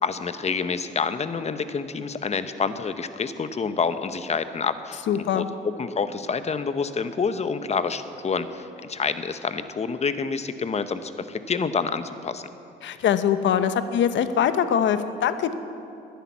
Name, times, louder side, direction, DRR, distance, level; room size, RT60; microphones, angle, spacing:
voice 1, 0.0-5.0 5.3-5.4 5.8-12.4, left 5 dB, 35° left, 11 dB, 0.8 m, -28 dB
voice 2, 5.1-5.5 12.8-15.5, left 8 dB, 70° left, 11 dB, 0.9 m, -23 dB
11.5 x 10.5 x 9.4 m, 2.7 s
cardioid pair, 90°, 20 cm